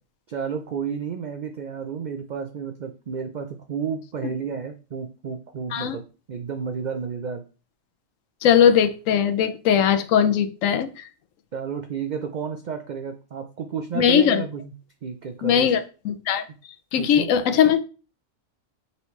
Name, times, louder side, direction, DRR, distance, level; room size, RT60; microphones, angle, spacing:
voice 1, 0.3-7.4 11.5-14.7 15.0-15.7 17.0-17.3, right 6 dB, 75° right, 5 dB, 0.4 m, -31 dB
voice 2, 8.4-11.0 13.9-14.4 15.4-16.4 16.9-17.8, left 8 dB, 85° left, 9 dB, 1.0 m, -19 dB
5.3 x 3.2 x 3.1 m, 0.35 s
omnidirectional pair, 1.3 m